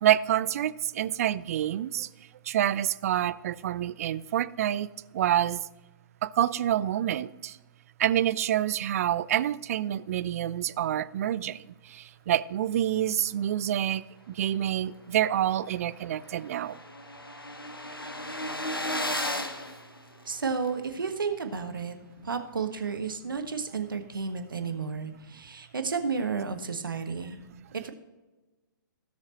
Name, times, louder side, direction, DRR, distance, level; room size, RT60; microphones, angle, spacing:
voice 1, 0.0-2.1 2.4-4.9 5.1-5.6 6.2-7.6 8.0-16.8, right 11 dB, 40° right, 17 dB, 0.4 m, -27 dB
sound 1, 15.1-15.2 15.5-15.6 15.8-20.7, left 1 dB, 90° left, 1.1 m, -35 dB
voice 2, 20.2-22.0 22.2-27.4 27.7-27.9, right 5 dB, 70° right, 7 dB, 1.3 m, -32 dB
16.5 x 6.5 x 3.0 m, 1.1 s
figure-of-eight pair, 125°, 12 cm